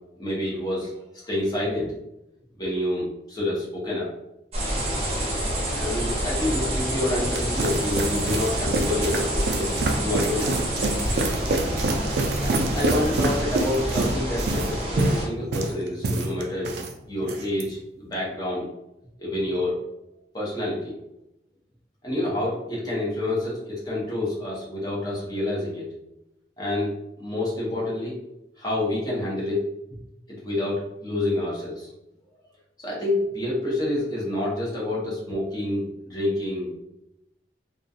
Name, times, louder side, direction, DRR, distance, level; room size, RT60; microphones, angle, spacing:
voice 1, 0.2-0.9 1.2-1.9 2.6-4.1 5.8-10.6 12.4-16.7 17.1-18.6 19.2-19.8 20.3-20.9 22.0-25.9 26.6-26.9 27.2-28.1 28.6-29.7 30.4-31.9 32.8-36.7, left 1 dB, 20° left, -6 dB, 0.8 m, -28 dB
sound 1, 4.5-15.3, right 1 dB, 35° right, 0.6 m, -28 dB
sound 2, 7.0-16.9 17.2-17.6, right 2 dB, 70° right, 0.3 m, -27 dB
2.4 x 2.2 x 2.6 m, 0.88 s
head